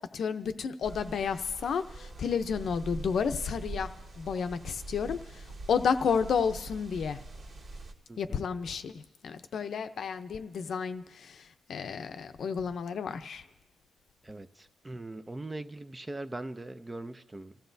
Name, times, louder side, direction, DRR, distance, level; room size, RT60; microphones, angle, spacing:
voice 1, 0.1-3.9 4.2-7.2 8.2-13.4, left 6 dB, 55° left, 9 dB, 0.6 m, -31 dB
sound 1, 0.8-7.9, right 2 dB, 60° right, 1.9 m, -44 dB
voice 2, 8.1-8.5 14.2-17.6, right 2 dB, 15° right, 10 dB, 0.5 m, -41 dB
29.0 x 14.5 x 2.7 m, 1.0 s
cardioid pair, 135°, 0 cm